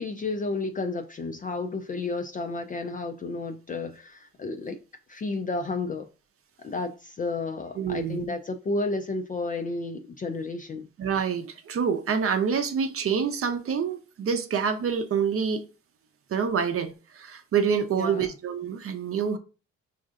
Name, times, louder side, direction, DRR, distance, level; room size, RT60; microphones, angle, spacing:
voice 1, 0.0-4.8 5.1-6.1 6.6-10.9 18.0-18.3, left 3 dB, 30° left, 0.3 m, -32 dB
voice 2, 7.8-8.3 11.0-15.7 16.3-19.4, right 6 dB, 50° right, 0.6 m, -27 dB
5.3 x 2.5 x 2.4 m
cardioid pair, 90°, 30 cm